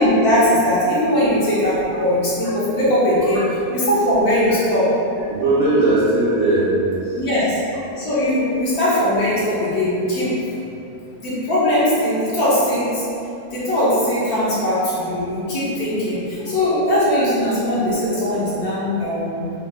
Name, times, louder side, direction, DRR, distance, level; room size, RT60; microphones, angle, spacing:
voice 1, 0.0-3.4 3.7-4.9 7.2-7.6 8.0-10.3 11.2-13.0 13.5-19.5, left 1 dB, 70° left, -10 dB, 1.3 m, -19 dB
voice 2, 5.3-7.2, right 2 dB, 60° right, -13 dB, 1.1 m, -18 dB
4.4 x 2.3 x 2.4 m, 2.7 s
omnidirectional pair, 1.7 m